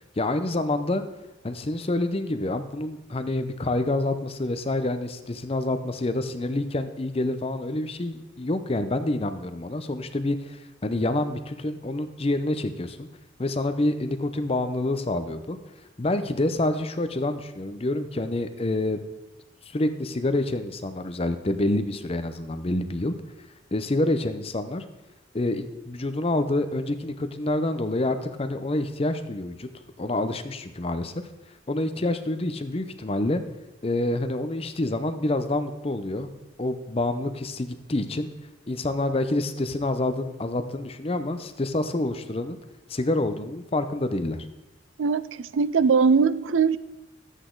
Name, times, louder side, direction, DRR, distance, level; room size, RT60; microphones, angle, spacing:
voice 1, 0.2-1.0 1.4-13.1 13.4-15.6 16.0-19.0 19.7-23.1 23.7-24.8 25.3-29.7 30.0-31.1 31.7-33.4 33.8-36.3 36.6-38.3 38.7-42.6 42.9-44.4, left 2 dB, 30° left, 0.6 m, -27 dB
voice 2, 45.0-46.8, right 5 dB, 85° right, 0.4 m, -21 dB
12.5 x 8.1 x 3.8 m
head